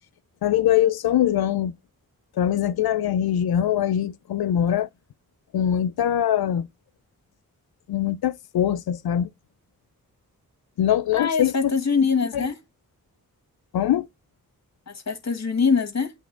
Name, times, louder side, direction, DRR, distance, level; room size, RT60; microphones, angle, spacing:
voice 1, 0.4-1.7 2.4-4.9 5.5-6.7 7.9-9.3 10.8-11.7 12.3-12.5 13.7-14.1, left 10 dB, 85° left, 0.6 m, -22 dB
voice 2, 11.1-12.6 14.9-16.1, left 5 dB, 45° left, 1.6 m, -23 dB
8.4 x 3.5 x 3.6 m
cardioid pair, 65°, 36 cm